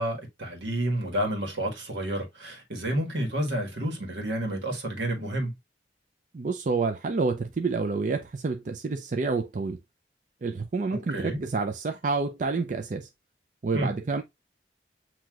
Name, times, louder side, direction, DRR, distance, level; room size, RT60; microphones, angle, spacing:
voice 1, 0.0-5.5 10.9-11.4 13.7-13.9, right 1 dB, 85° right, 1.6 m, -30 dB
voice 2, 6.3-9.8 10.4-13.1 13.6-14.2, right 4 dB, 45° right, 0.4 m, -28 dB
7.6 x 2.8 x 2.3 m
head